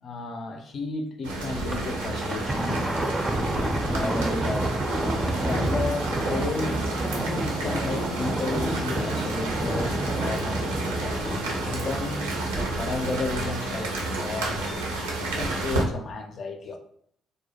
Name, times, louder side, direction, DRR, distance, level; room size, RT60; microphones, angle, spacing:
voice 1, 0.0-4.8 5.3-6.8 7.1-11.3 11.6-14.9 15.2-16.8, left 3 dB, 50° left, 0.4 m, -33 dB
sound 1, 1.2-15.8, right 2 dB, 80° right, 0.4 m, -31 dB
Thunder, 1.5-13.3, right 1 dB, 20° right, 0.4 m, -30 dB
2.2 x 2.0 x 2.8 m
figure-of-eight pair, 45°, 0 cm